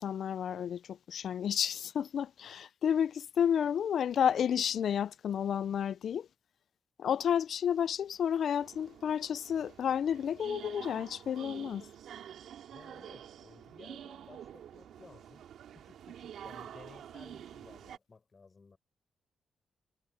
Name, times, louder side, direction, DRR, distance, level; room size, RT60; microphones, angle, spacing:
voice 1, 0.0-6.3 7.0-11.9, left 8 dB, 70° left, 0.4 m, -31 dB
sound 1, 8.6-18.0, right 9 dB, 85° right, 2.3 m, -48 dB
voice 2, 12.7-18.8, left 4 dB, 35° left, 5.3 m, -56 dB
cardioid pair, 100°, 0 cm